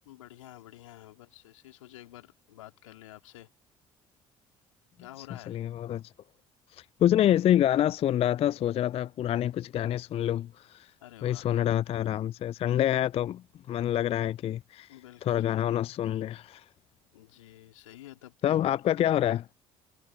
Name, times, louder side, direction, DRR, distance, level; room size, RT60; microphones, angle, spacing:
voice 1, 0.1-3.5 5.0-5.6 11.0-11.5 14.9-15.5 17.1-18.8, left 15 dB, 75° left, 2.9 m, -50 dB
voice 2, 5.5-6.0 6.7-10.9 11.2-13.4 13.7-14.9 15.2-16.6 18.4-19.5, left 11 dB, 35° left, 0.4 m, -27 dB
figure-of-eight pair, 50°, 17 cm